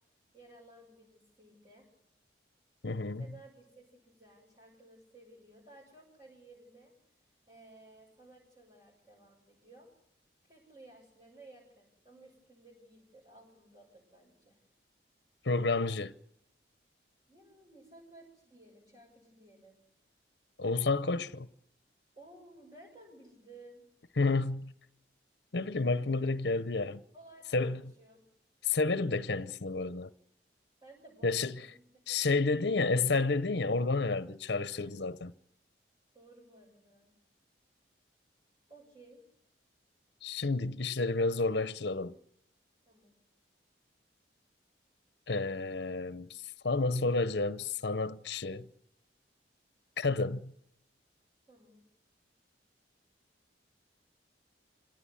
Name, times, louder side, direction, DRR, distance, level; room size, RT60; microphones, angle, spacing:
voice 1, 0.3-1.9 3.2-3.7 3.9-9.9 10.4-14.6 17.3-19.8 22.1-23.9 27.1-28.3 30.8-31.5 31.7-32.4 34.8-35.0 36.1-37.1 38.7-39.2 42.8-43.1 51.5-51.8, right 2 dB, 25° right, 7.4 m, -57 dB
voice 2, 2.8-3.3 15.4-16.1 20.6-21.5 24.2-24.7 25.5-27.0 27.5-27.9 28.6-30.1 31.2-31.5 32.1-35.3 40.2-42.1 45.3-48.7 50.0-50.5, left 3 dB, 65° left, 0.8 m, -30 dB
26.0 x 17.5 x 8.5 m
head